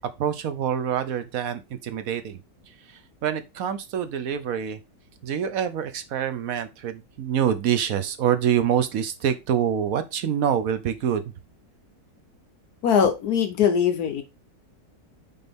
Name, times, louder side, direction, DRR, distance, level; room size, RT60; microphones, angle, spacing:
voice 1, 0.2-2.4 3.2-4.8 5.2-11.2, right 9 dB, 60° right, 1.0 m, -26 dB
voice 2, 12.8-14.2, left 7 dB, 65° left, 1.2 m, -21 dB
6.8 x 4.3 x 3.6 m
omnidirectional pair, 1.9 m